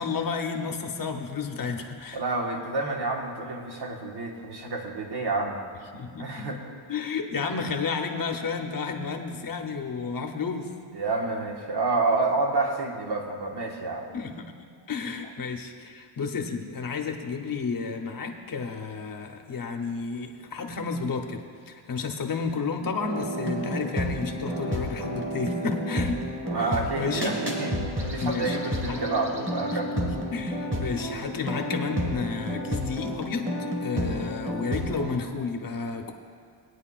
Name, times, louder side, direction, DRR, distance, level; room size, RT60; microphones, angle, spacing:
voice 1, 0.0-2.2 5.9-6.5 6.9-10.7 14.1-14.5 14.9-26.2 26.5-27.3 28.2-28.6 28.9-29.0 30.0-33.5 33.8-36.1, left 5 dB, 40° left, 4 dB, 1.0 m, -31 dB
voice 2, 2.1-5.6 6.2-6.6 10.9-14.1 26.5-29.9, right 3 dB, 50° right, 0 dB, 1.6 m, -29 dB
sound 1, 23.0-35.1, equal, 25° right, 2.7 m, -31 dB
19.5 x 9.6 x 2.5 m, 2.3 s
cardioid pair, 120°, 49 cm